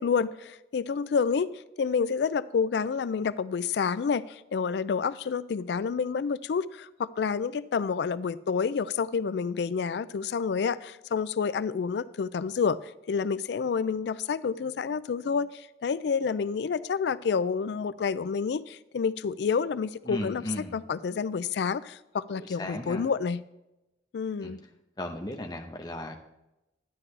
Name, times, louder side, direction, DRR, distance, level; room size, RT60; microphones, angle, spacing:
voice 1, 0.0-1.5 1.8-12.8 13.1-20.4 20.7-23.4 24.1-24.6, left 6 dB, 70° left, 17 dB, 0.3 m, -29 dB
voice 2, 20.0-20.8 22.4-23.0 24.4-24.5 25.0-26.2, left 1 dB, 20° left, 4 dB, 0.8 m, -36 dB
12.0 x 9.9 x 3.3 m, 0.94 s
head